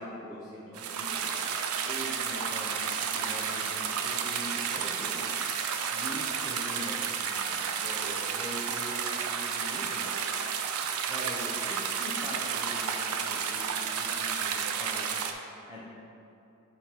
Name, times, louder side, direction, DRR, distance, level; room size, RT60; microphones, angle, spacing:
voice 1, 0.0-1.4 1.9-5.3 5.9-10.1 11.1-15.1 15.7-15.9, equal, 10° right, -7 dB, 0.6 m, -42 dB
sound 1, 0.7-15.3, right 7 dB, 80° right, 0.4 m, -31 dB
6.1 x 3.6 x 4.3 m, 2.8 s
head